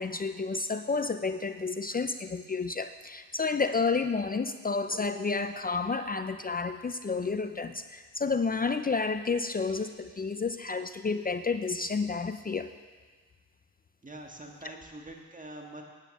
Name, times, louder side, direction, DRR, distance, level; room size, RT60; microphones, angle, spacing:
voice 1, 0.0-12.7, left 4 dB, 25° left, 9 dB, 0.5 m, -30 dB
voice 2, 14.0-15.8, right 1 dB, 20° right, 1 dB, 1.8 m, -44 dB
9.3 x 9.0 x 7.2 m, 1.5 s
supercardioid pair, 75°, 40 cm